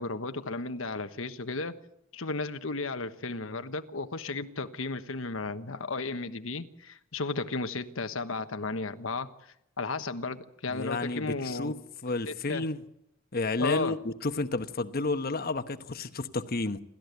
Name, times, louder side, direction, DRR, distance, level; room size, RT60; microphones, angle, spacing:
voice 1, 0.0-1.8 2.1-11.7 12.3-12.6 13.6-14.0, left 3 dB, 90° left, 1.3 m, -34 dB
voice 2, 10.7-11.8 12.0-12.8 13.3-16.8, left 3 dB, 50° left, 1.1 m, -31 dB
28.0 x 13.5 x 8.2 m
head